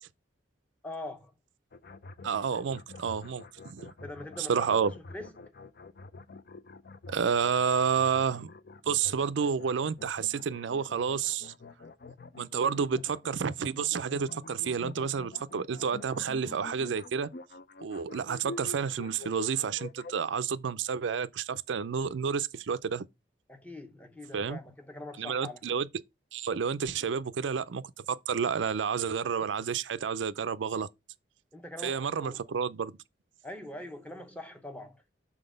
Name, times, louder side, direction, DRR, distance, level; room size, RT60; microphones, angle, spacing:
voice 1, 0.8-1.3 4.0-5.3 23.5-25.6 31.5-32.4 33.4-35.0, left 1 dB, 10° left, 0.8 m, -43 dB
sound 1, 1.7-20.2, left 3 dB, 55° left, 0.5 m, -47 dB
voice 2, 2.2-3.9 4.5-4.9 7.1-8.5 8.9-11.5 12.4-17.3 17.8-23.1 24.3-24.6 25.2-25.9 26.3-30.9 31.8-32.9, right 6 dB, 80° right, 0.4 m, -30 dB
6.0 x 4.0 x 5.0 m
head